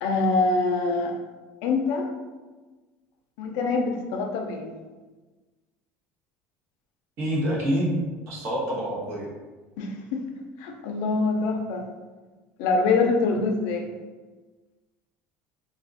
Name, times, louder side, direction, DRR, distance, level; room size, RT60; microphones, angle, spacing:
voice 1, 0.0-1.1 1.6-2.1 3.4-4.7 9.8-10.2 10.6-11.8 12.6-13.9, left 3 dB, 75° left, 3 dB, 0.5 m, -24 dB
voice 2, 7.2-8.0 8.3-9.3, equal, 50° right, -5 dB, 1.2 m, -26 dB
2.7 x 2.4 x 3.6 m, 1.3 s
cardioid pair, 150°, 5 cm